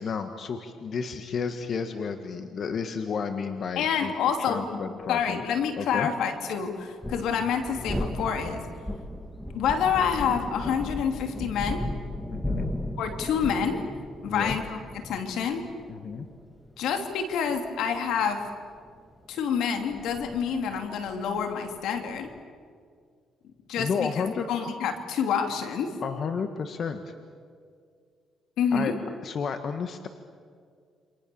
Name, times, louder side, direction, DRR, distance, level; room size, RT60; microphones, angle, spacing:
voice 1, 0.0-4.1 4.4-5.4 5.8-6.1 12.3-12.7 14.3-14.6 15.9-16.3 23.8-24.7 26.0-27.1 28.7-29.0 29.2-30.1, left 6 dB, 55° left, 7 dB, 1.7 m, -32 dB
voice 2, 3.8-4.8 5.1-8.6 9.5-11.9 13.0-13.8 14.2-15.6 16.8-18.5 19.3-22.3 23.7-25.9 28.6-29.0, left 7 dB, 85° left, 5 dB, 2.9 m, -28 dB
sound 1, 6.8-22.4, left 1 dB, 5° left, 2.4 m, -36 dB
28.5 x 26.5 x 7.1 m, 2.1 s
cardioid pair, 90°, 0 cm